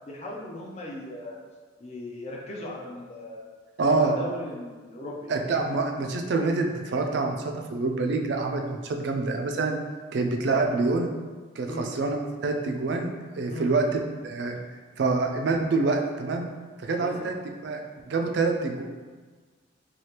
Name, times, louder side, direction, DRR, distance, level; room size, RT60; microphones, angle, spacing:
voice 1, 0.1-1.4 1.8-3.5 4.0-5.2 11.6-11.9 13.5-13.7 17.0-17.2, left 1 dB, 35° left, -2 dB, 0.4 m, -38 dB
voice 2, 3.8-4.1 5.3-9.8 10.1-11.1 11.6-12.2 12.4-13.8 14.2-14.6 15.0-16.5 16.8-17.4 17.6-17.8 18.1-18.8, right 3 dB, 60° right, 3 dB, 0.3 m, -26 dB
3.2 x 2.4 x 2.8 m, 1.4 s
head